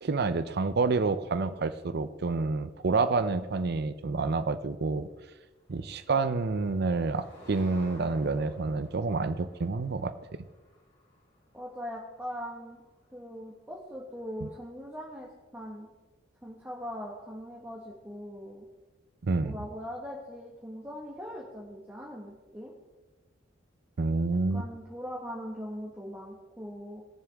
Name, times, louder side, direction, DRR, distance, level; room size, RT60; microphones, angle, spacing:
voice 1, 0.0-5.1 5.7-10.1 19.2-19.6 24.0-24.6, right 3 dB, 55° right, 12 dB, 0.6 m, -28 dB
Motor vehicle (road), 5.5-13.3, left 1 dB, 55° left, 3.8 m, -56 dB
voice 2, 11.5-12.8 13.1-15.9 16.4-18.7 19.4-22.7 24.5-27.0, equal, 10° right, -3 dB, 1.5 m, -41 dB
19.5 x 7.2 x 3.5 m, 1.2 s
head